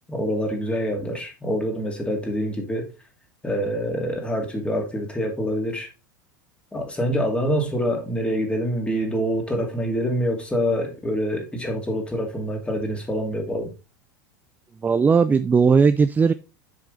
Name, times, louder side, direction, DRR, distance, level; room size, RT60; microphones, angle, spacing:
voice 1, 0.1-2.9 3.4-5.9 6.7-13.7, equal, 10° left, 2.4 m, -26 dB
voice 2, 14.8-16.3, right 5 dB, 15° right, 0.4 m, -17 dB
7.4 x 4.8 x 4.0 m
hypercardioid pair, 100°, 10 cm